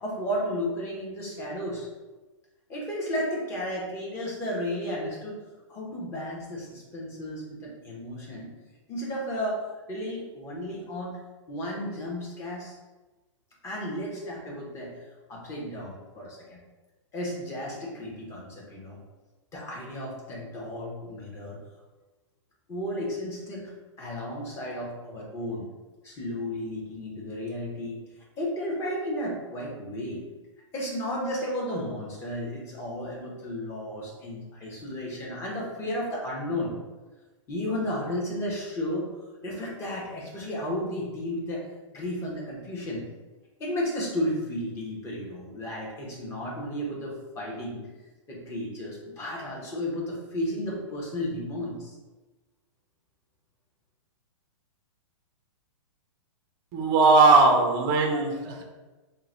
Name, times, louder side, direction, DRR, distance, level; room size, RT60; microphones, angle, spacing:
voice 1, 0.0-1.9 2.7-5.4 5.7-8.5 8.9-9.6 9.9-11.2 11.5-12.8 13.6-14.9 15.3-16.6 17.1-19.0 19.5-21.6 22.7-23.7 24.0-25.7 26.0-28.0 28.4-30.2 30.7-36.8 37.5-39.1 39.4-43.0 43.6-47.8 48.3-51.9, equal, 15° left, -3 dB, 0.8 m, -33 dB
voice 2, 56.7-58.6, right 3 dB, 25° right, 2 dB, 0.5 m, -19 dB
3.8 x 2.1 x 4.2 m, 1.2 s
hypercardioid pair, 155°, 16 cm